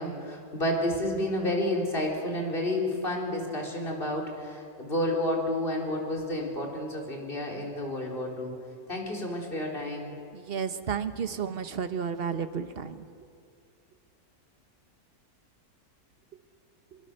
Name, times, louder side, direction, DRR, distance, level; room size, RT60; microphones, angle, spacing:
voice 1, 0.0-8.6 8.9-10.1, left 1 dB, 35° left, -1 dB, 4.2 m, -30 dB
voice 2, 10.3-13.0, right 6 dB, 45° right, 10 dB, 1.2 m, -32 dB
24.5 x 24.0 x 6.7 m, 2.4 s
omnidirectional pair, 1.6 m